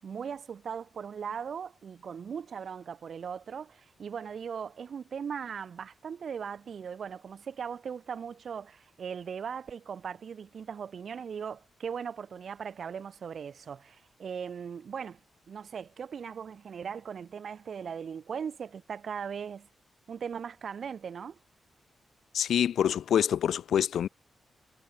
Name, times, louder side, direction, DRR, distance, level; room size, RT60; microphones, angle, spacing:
voice 1, 0.0-15.2 15.5-19.7 20.1-21.4, right 7 dB, 55° right, 5.0 m, -39 dB
voice 2, 22.3-24.1, left 9 dB, 85° left, 0.5 m, -26 dB
wide cardioid pair, 130°, 0 cm